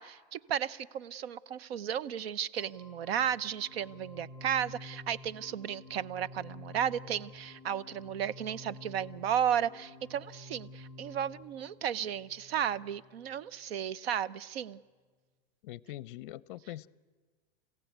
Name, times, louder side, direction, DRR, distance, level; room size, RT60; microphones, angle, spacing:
voice 1, 0.0-14.8, right 9 dB, 75° right, 18 dB, 0.8 m, -34 dB
sound 1, 2.6-13.5, left 1 dB, 20° right, 4.1 m, -51 dB
voice 2, 15.6-16.9, left 15 dB, 55° left, 20 dB, 0.7 m, -43 dB
29.5 x 15.5 x 9.3 m, 1.5 s
supercardioid pair, 155°, 31 cm